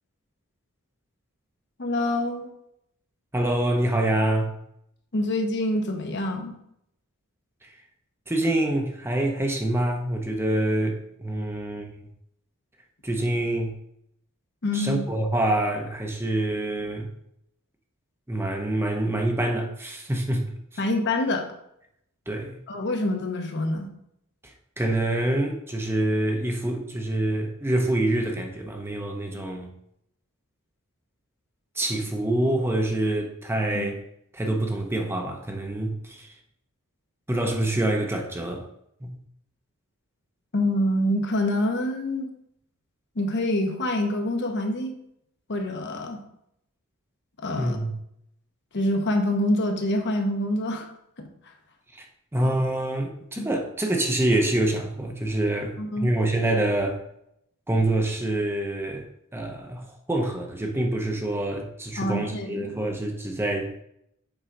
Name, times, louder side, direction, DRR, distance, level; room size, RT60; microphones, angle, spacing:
voice 1, 1.8-2.5 5.1-6.5 14.6-15.0 20.8-21.5 22.7-23.9 33.7-33.9 40.5-42.3 43.2-44.9 45.5-46.2 47.4-47.8 48.7-50.9 53.4-53.5 55.8-56.1 62.0-62.8, left 1 dB, 55° left, 1.0 m, -26 dB
voice 2, 3.3-4.6 7.6-7.7 8.3-12.0 13.0-13.8 14.7-17.1 18.3-20.8 22.3-22.6 24.8-29.7 31.8-34.0 34.3-36.3 37.3-38.7 39.0-39.2 47.6-48.0 51.9-52.1 52.3-57.0 57.7-59.0 59.3-63.8, right 1 dB, 10° right, 0.7 m, -26 dB
7.2 x 3.8 x 5.1 m
head